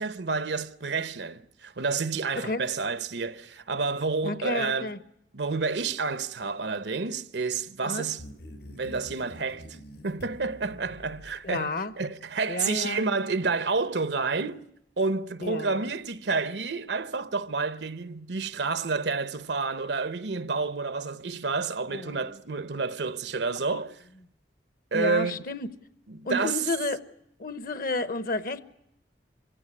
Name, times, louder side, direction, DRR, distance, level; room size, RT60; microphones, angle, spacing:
voice 1, 0.0-4.9 5.3-8.2 8.8-9.8 10.0-14.6 15.0-24.0 24.9-25.4 26.1-26.6, right 4 dB, 75° right, 0.9 m, -29 dB
voice 2, 4.2-5.0 7.8-8.1 11.4-11.9 12.5-13.1 15.4-15.9 21.9-22.2 23.7-23.8 24.9-25.7 26.2-27.0 27.4-28.6, left 2 dB, 55° left, 1.0 m, -31 dB
sound 1, 8.2-11.9, equal, 70° left, 4.7 m, -46 dB
24.5 x 16.0 x 9.6 m
head